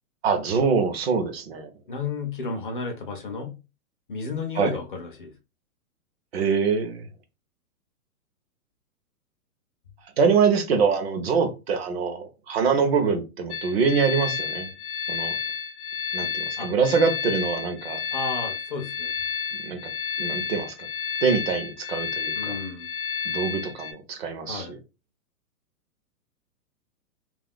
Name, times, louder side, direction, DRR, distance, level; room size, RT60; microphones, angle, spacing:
voice 1, 0.2-1.7 4.6-4.7 6.3-7.0 10.2-14.7 15.1-15.4 16.1-18.0 19.6-19.8 20.2-20.7 21.2-22.5 23.3-24.7, right 5 dB, 45° right, 0.6 m, -24 dB
voice 2, 1.9-3.6 4.1-5.3 16.6-16.7 18.1-19.1 22.3-22.9 24.5-24.8, left 4 dB, 40° left, 0.4 m, -32 dB
sound 1, 13.5-23.9, left 7 dB, 70° left, 0.8 m, -31 dB
2.4 x 2.0 x 3.4 m
hypercardioid pair, 160°, 44 cm